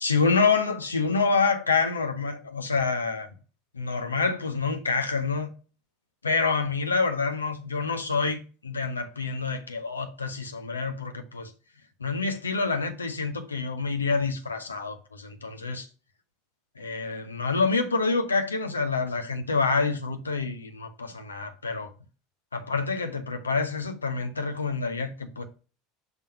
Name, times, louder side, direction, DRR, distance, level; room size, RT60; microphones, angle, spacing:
voice 1, 0.0-3.3 3.7-5.5 6.2-11.5 12.0-15.9 16.8-21.9 22.5-25.4, left 4 dB, 85° left, 0.7 m, -27 dB
5.8 x 3.6 x 5.5 m
figure-of-eight pair, 75°, 0 cm